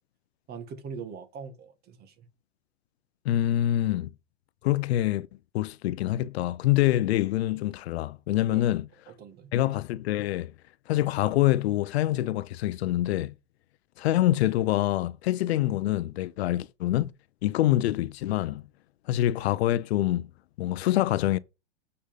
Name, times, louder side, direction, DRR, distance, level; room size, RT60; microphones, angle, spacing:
voice 1, 0.5-2.3 8.5-8.7 9.2-9.5, right 6 dB, 30° right, 1.6 m, -41 dB
voice 2, 3.2-4.1 4.6-5.3 5.5-8.9 9.5-10.5 10.9-13.3 14.0-17.1 17.4-18.7 19.1-20.3 20.6-21.4, left 14 dB, 65° left, 0.7 m, -25 dB
8.2 x 5.4 x 5.2 m
hypercardioid pair, 135°, 34 cm